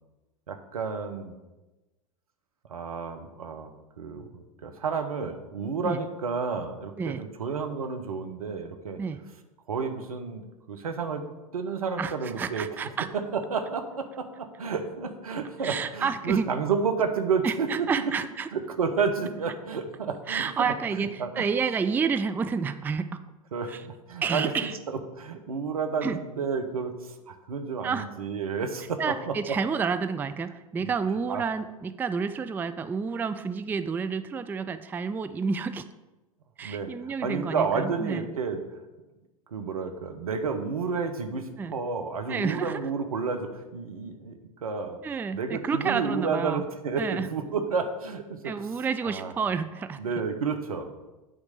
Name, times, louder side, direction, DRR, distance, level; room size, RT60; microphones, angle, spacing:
voice 1, 0.5-1.3 2.7-3.7 4.0-9.0 9.7-11.2 11.5-12.7 13.1-18.1 18.5-21.4 23.5-24.5 24.9-29.3 30.8-30.9 31.3-31.4 36.6-38.6 39.5-45.0 45.3-48.7 49.0-49.3 50.0-50.9, right 5 dB, 80° right, 6 dB, 0.9 m, -31 dB
voice 2, 12.0-13.1 15.6-16.5 17.4-18.5 20.3-23.2 23.7-23.8 24.2-24.7 26.0-26.2 27.8-28.1 29.0-35.8 36.6-38.3 41.6-41.7 42.3-42.8 45.0-46.6 47.0-47.3 48.4-50.0, right 5 dB, 10° right, 11 dB, 0.3 m, -29 dB
8.7 x 3.2 x 6.5 m, 1.1 s
figure-of-eight pair, 85°, 18 cm